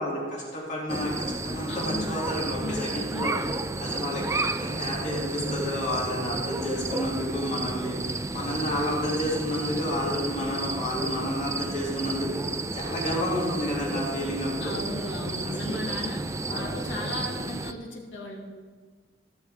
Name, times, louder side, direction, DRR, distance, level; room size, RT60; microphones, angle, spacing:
voice 1, 0.0-3.3 3.8-7.9 8.3-12.4 12.7-14.8 15.4-15.8 16.5-16.8, left 1 dB, 40° left, -5 dB, 2.5 m, -30 dB
sound 1, 0.9-17.7, right 2 dB, 15° right, 0.4 m, -32 dB
voice 2, 1.7-2.2 2.6-3.5 14.6-16.2 16.5-18.4, left 2 dB, 85° left, -1 dB, 2.1 m, -36 dB
16.0 x 6.9 x 3.6 m, 1.5 s
head